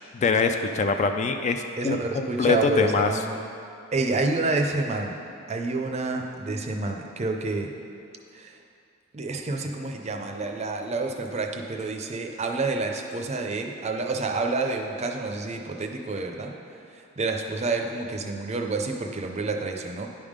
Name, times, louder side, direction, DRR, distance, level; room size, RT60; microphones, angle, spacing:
voice 1, 0.1-3.1, left 4 dB, 35° left, 6 dB, 0.3 m, -24 dB
voice 2, 1.8-3.4 3.9-5.2 5.5-7.7 8.3-8.6 9.1-16.5 16.9-20.1, right 3 dB, 30° right, 3 dB, 0.5 m, -28 dB
10.0 x 3.6 x 5.1 m, 2.5 s
head